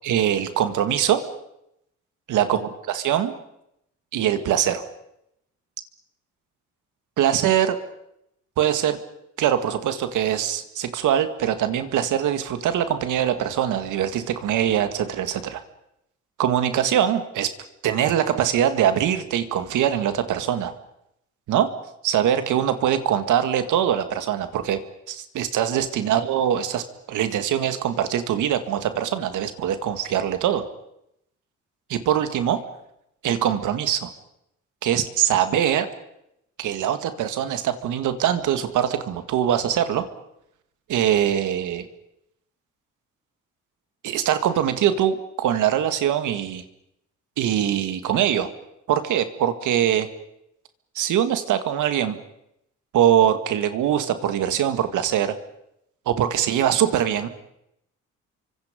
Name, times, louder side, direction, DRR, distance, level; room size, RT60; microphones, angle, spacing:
voice 1, 0.0-1.2 2.3-3.3 4.1-4.8 7.2-7.8 8.6-9.0 9.4-15.6 16.4-17.5 17.8-20.7 21.5-21.7 22.0-24.8 25.1-30.6 31.9-32.6 33.2-34.1 34.8-35.9 36.6-40.1 40.9-41.9 44.0-46.6 47.4-48.5 48.9-50.1 51.0-52.2 52.9-55.4 56.1-57.3, right 10 dB, 80° right, 9 dB, 2.0 m, -22 dB
29.5 x 24.5 x 5.2 m, 0.80 s
cardioid pair, 90°, 30 cm